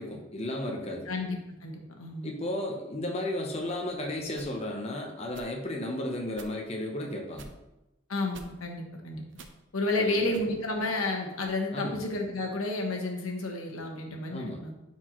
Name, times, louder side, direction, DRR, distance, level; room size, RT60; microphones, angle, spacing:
voice 1, 0.0-1.1 2.2-7.5 10.0-10.3 11.7-12.0 14.3-14.6, left 1 dB, 30° left, 1 dB, 0.8 m, -34 dB
voice 2, 1.1-2.3 8.1-9.2 9.7-14.7, left 2 dB, 85° left, 2 dB, 1.2 m, -31 dB
sound 1, 4.3-4.6 5.3-5.5 6.3-6.6 7.3-7.5 8.3-8.5 9.3-9.6 10.3-10.4 11.3-11.6, right 3 dB, 60° right, 0.6 m, -49 dB
10.0 x 4.4 x 3.1 m, 0.94 s
head